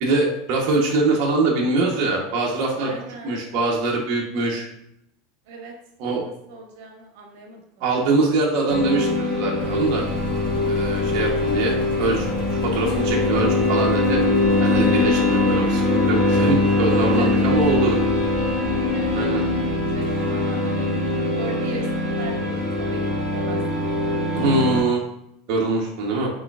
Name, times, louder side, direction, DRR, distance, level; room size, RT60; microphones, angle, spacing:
voice 1, 0.0-2.9 3.2-4.6 6.0-6.2 7.8-10.0 10.6-12.3 12.6-14.2 14.6-18.0 19.1-19.4 24.3-25.0 25.5-26.3, right 3 dB, 40° right, -2 dB, 0.8 m, -23 dB
voice 2, 2.7-3.4 5.4-5.7 6.2-7.8 14.7-15.3 16.9-17.5 18.9-19.5 19.8-24.3, right 3 dB, 60° right, 2 dB, 1.1 m, -37 dB
sound 1, 8.7-24.8, left 2 dB, 10° right, 1.4 m, -22 dB
Engine, 9.6-21.2, left 3 dB, 65° left, 1.0 m, -35 dB
4.7 x 3.9 x 2.3 m, 0.78 s
supercardioid pair, 170°, 0 cm